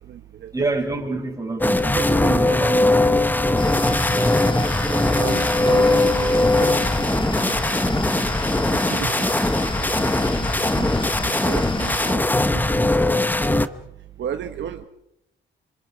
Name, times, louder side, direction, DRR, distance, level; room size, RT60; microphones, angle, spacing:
voice 1, 0.0-0.5 3.8-14.8, right 9 dB, 65° right, 7 dB, 1.3 m, -36 dB
voice 2, 0.5-3.6, right 2 dB, 15° right, 3 dB, 5.1 m, -27 dB
sound 1, 1.6-13.7, left 2 dB, 10° left, 1.0 m, -20 dB
sound 2, 3.6-12.1, left 2 dB, 25° left, 2.4 m, -32 dB
sound 3, 5.0-13.2, left 6 dB, 65° left, 3.4 m, -39 dB
27.0 x 25.5 x 5.0 m, 0.79 s
cardioid pair, 90°, 20 cm